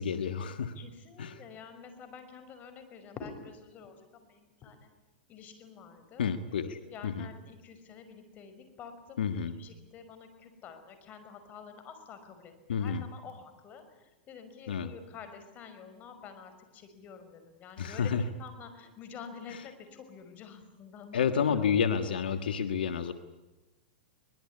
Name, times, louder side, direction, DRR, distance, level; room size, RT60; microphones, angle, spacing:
voice 1, 0.0-0.7 1.2-1.4 6.2-7.3 9.2-9.5 12.7-13.1 14.7-14.9 17.8-18.2 19.5-19.6 21.1-23.1, left 7 dB, 85° left, 10 dB, 1.6 m, -30 dB
voice 2, 0.8-4.9 5.3-6.3 6.7-9.3 9.6-21.8, left 6 dB, 35° left, 9 dB, 5.7 m, -48 dB
23.5 x 21.0 x 9.8 m, 1.1 s
hypercardioid pair, 125°, 5 cm